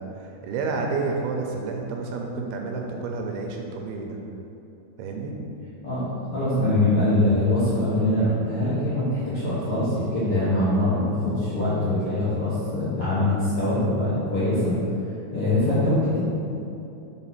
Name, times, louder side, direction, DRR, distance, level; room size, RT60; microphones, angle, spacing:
voice 1, 0.0-4.2 5.0-5.3, right 4 dB, 85° right, 1 dB, 2.6 m, -30 dB
voice 2, 5.8-14.7 15.3-16.2, left 1 dB, 55° left, -12 dB, 1.6 m, -23 dB
6.1 x 4.0 x 5.8 m, 2.8 s
omnidirectional pair, 4.6 m